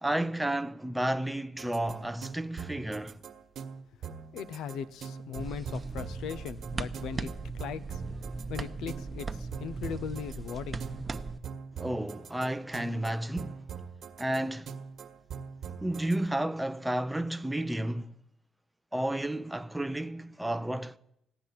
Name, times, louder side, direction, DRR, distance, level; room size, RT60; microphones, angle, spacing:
voice 1, 0.0-3.2 11.8-13.5 14.2-14.7 15.8-18.1 18.9-21.0, right 1 dB, 5° right, 0.6 m, -32 dB
sound 1, 1.6-16.2, right 6 dB, 65° right, 1.5 m, -43 dB
voice 2, 4.0-8.0 8.5-10.9, left 7 dB, 85° left, 0.7 m, -39 dB
sound 2, 5.4-11.4, right 3 dB, 25° right, 0.9 m, -38 dB
15.5 x 10.0 x 8.4 m
cardioid pair, 90°, 0 cm